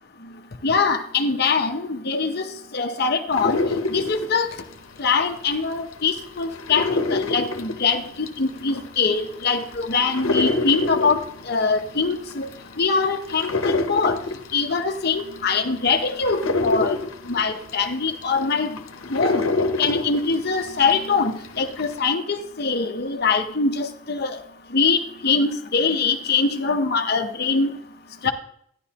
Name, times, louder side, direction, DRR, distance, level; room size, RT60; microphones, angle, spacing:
voice 1, 0.6-2.4 2.7-3.6 3.9-4.5 5.0-11.2 11.5-12.5 12.8-14.2 14.5-17.0 17.3-18.8 19.1-19.4 19.8-24.4 24.7-27.7 28.2-28.3, left 4 dB, 50° left, 7 dB, 0.8 m, -23 dB
sound 1, 3.3-5.6 5.9-21.1 21.4-22.0, left 2 dB, 85° left, 0.9 m, -27 dB
12.0 x 10.5 x 2.9 m, 0.68 s
head